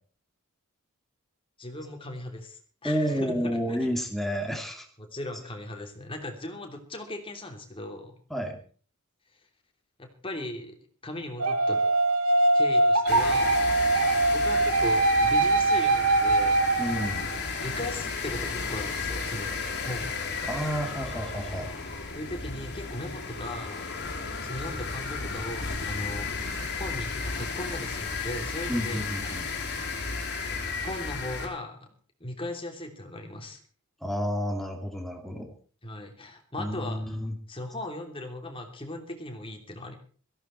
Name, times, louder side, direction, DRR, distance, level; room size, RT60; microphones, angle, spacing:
voice 1, 1.6-3.9 5.0-8.1 10.0-10.8 11.0-11.8 12.5-13.7 14.3-16.7 17.2-20.1 22.1-24.0 24.4-29.4 30.8-31.9 32.2-33.6 35.8-37.2 37.5-39.9, left 1 dB, 25° left, 3 dB, 3.0 m, -38 dB
voice 2, 2.8-4.8 8.3-8.6 16.8-17.3 20.4-21.7 28.7-29.5 34.0-35.5 36.6-37.3, equal, ahead, 3 dB, 2.6 m, -30 dB
sound 1, 11.4-17.4, right 2 dB, 80° right, 1.5 m, -22 dB
sound 2, 13.1-31.5, left 4 dB, 50° left, 3.6 m, -34 dB
17.0 x 15.0 x 4.5 m, 0.43 s
head